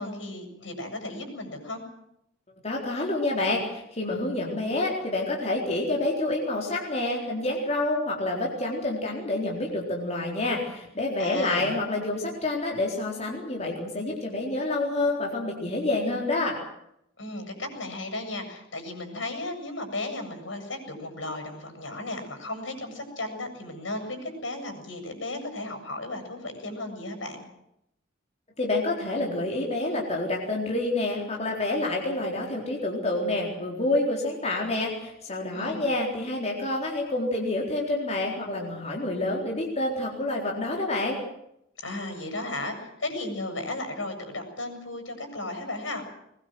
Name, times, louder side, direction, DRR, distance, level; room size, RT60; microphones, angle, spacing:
voice 1, 0.0-1.8 11.2-11.7 17.2-27.4 35.5-35.9 41.8-46.1, left 2 dB, 80° left, 6 dB, 7.8 m, -35 dB
voice 2, 2.6-16.6 28.6-41.2, left 2 dB, 35° left, -1 dB, 4.1 m, -28 dB
22.5 x 21.0 x 7.8 m, 0.79 s
head